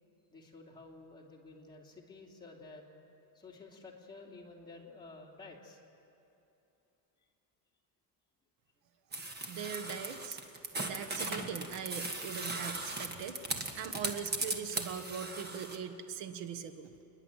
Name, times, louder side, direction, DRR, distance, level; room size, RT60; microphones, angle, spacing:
voice 1, 0.3-3.0 3.3-5.8, left 3 dB, 10° left, -3 dB, 2.8 m, -52 dB
sound 1, 9.1-15.8, right 2 dB, 25° right, 1.6 m, -38 dB
voice 2, 9.5-10.4 10.8-13.4 13.7-16.9, right 7 dB, 80° right, 9 dB, 1.4 m, -41 dB
29.0 x 10.5 x 9.1 m, 2.9 s
cardioid pair, 150°, 42 cm